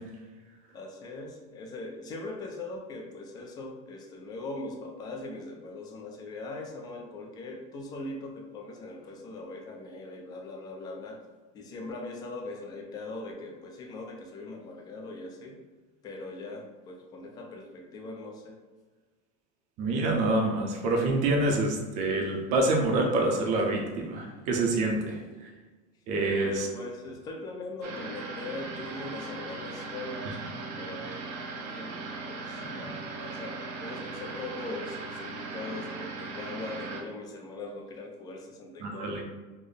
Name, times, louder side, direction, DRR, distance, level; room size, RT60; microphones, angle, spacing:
voice 1, 0.7-11.2 11.5-15.6 16.0-18.6 26.3-30.3 30.8-31.2 31.5-32.0 32.2-39.2, left 2 dB, 20° left, 1 dB, 0.4 m, -40 dB
voice 2, 19.8-25.5 26.1-26.7 32.6-32.8 38.8-39.2, right 2 dB, 35° right, 1 dB, 0.5 m, -27 dB
sound 1, 27.8-37.0, right 3 dB, 85° right, 0.7 m, -38 dB
3.3 x 2.0 x 3.8 m, 1.3 s
cardioid pair, 175°, 20 cm